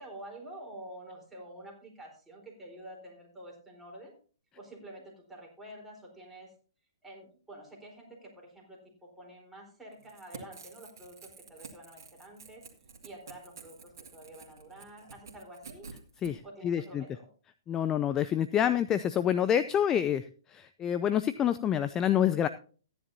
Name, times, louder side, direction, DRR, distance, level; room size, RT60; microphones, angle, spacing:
voice 1, 0.0-4.1 4.5-6.5 7.0-12.6 13.0-15.9 16.4-17.3, right 1 dB, 5° right, -2 dB, 4.0 m, -48 dB
Crackle / Tearing, 10.0-16.3, right 5 dB, 65° right, 2.0 m, -50 dB
voice 2, 16.2-17.0 17.7-20.2 20.5-22.5, left 9 dB, 20° left, 13 dB, 0.4 m, -27 dB
14.5 x 10.0 x 2.7 m, 0.40 s
hypercardioid pair, 125°, 2 cm